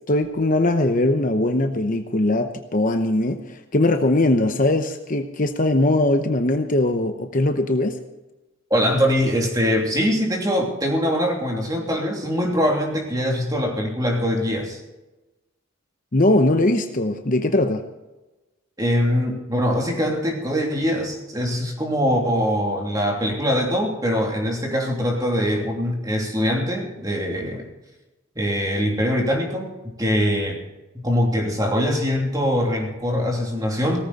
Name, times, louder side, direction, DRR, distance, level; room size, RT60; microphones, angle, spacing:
voice 1, 0.1-8.0 16.1-17.8, left 1 dB, 40° left, 6 dB, 0.9 m, -20 dB
voice 2, 8.7-14.8 18.8-27.7 28.4-29.7 30.0-30.6 31.0-34.1, equal, 15° right, 0 dB, 2.9 m, -22 dB
18.0 x 14.5 x 4.2 m, 1.0 s
head